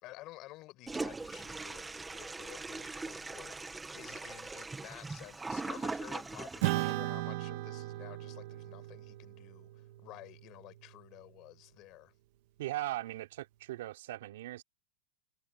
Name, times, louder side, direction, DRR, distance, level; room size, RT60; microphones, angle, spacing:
voice 1, 0.0-12.1, left 18 dB, 35° left, 5.8 m, -52 dB
Toilet flush, 0.9-6.9, right 3 dB, 5° right, 1.4 m, -41 dB
Acoustic guitar / Strum, 6.6-11.4, right 18 dB, 55° right, 2.1 m, -37 dB
voice 2, 12.6-14.6, right 15 dB, 70° right, 4.0 m, -39 dB
supercardioid pair, 165°, 0 cm